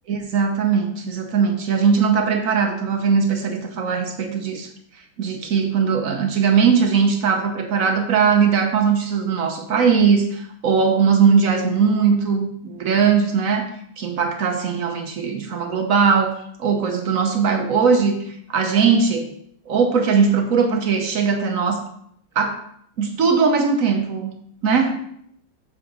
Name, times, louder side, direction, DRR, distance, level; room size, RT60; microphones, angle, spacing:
voice 1, 0.1-4.7 5.2-13.7 14.0-16.3 16.6-19.3 19.7-21.8 22.3-22.6 23.0-24.3 24.6-25.0, right 6 dB, 55° right, 5 dB, 1.1 m, -19 dB
7.6 x 7.2 x 3.9 m, 0.69 s
omnidirectional pair, 2.2 m